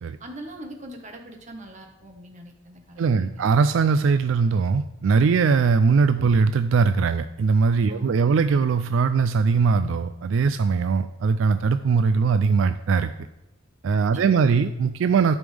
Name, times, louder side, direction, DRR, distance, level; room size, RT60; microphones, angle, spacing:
voice 1, 0.2-3.5 7.9-8.4 14.1-14.7, right 1 dB, 40° right, 3 dB, 1.4 m, -42 dB
voice 2, 3.0-13.1 13.8-15.3, right 5 dB, 75° right, 11 dB, 0.4 m, -20 dB
12.5 x 5.3 x 3.4 m, 0.97 s
head